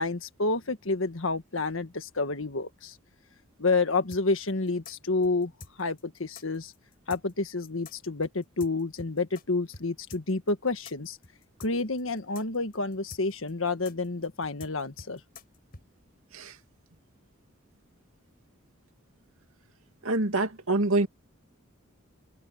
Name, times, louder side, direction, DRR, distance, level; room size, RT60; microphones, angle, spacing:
voice 1, 0.0-2.9 3.6-5.5 5.8-6.7 7.1-11.2 11.6-15.2, left 3 dB, 70° left, 1.6 m, -29 dB
sound 1, 4.1-9.4 9.7-9.8 10.1-15.8, left 3 dB, 50° left, 5.3 m, -47 dB
voice 2, 20.0-21.1, right 2 dB, 90° right, 2.7 m, -26 dB
head